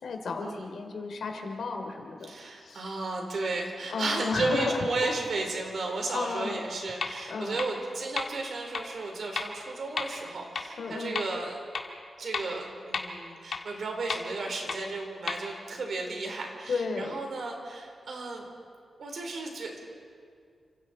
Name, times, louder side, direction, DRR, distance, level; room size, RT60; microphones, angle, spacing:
voice 1, 0.0-2.3 2.6-2.8 3.9-5.1 6.1-6.6 7.3-7.6 10.8-11.2 16.7-17.2, left 4 dB, 85° left, 4 dB, 3.2 m, -33 dB
voice 2, 2.3-11.6 12.2-18.4 19.0-19.8, right 3 dB, 65° right, 2 dB, 4.1 m, -34 dB
sound 1, 7.0-7.1 7.6-7.7 8.2-8.3 8.7-8.8 9.4-9.5 10.0-10.1 10.6-10.7 11.2-11.3 11.7-11.8 12.3-12.4 12.9-13.0 13.5-13.6 14.1-14.2 14.7-14.8 15.3-15.4, left 5 dB, 65° left, 2.1 m, -31 dB
29.5 x 26.5 x 4.4 m, 2.2 s
wide cardioid pair, 170°, 0 cm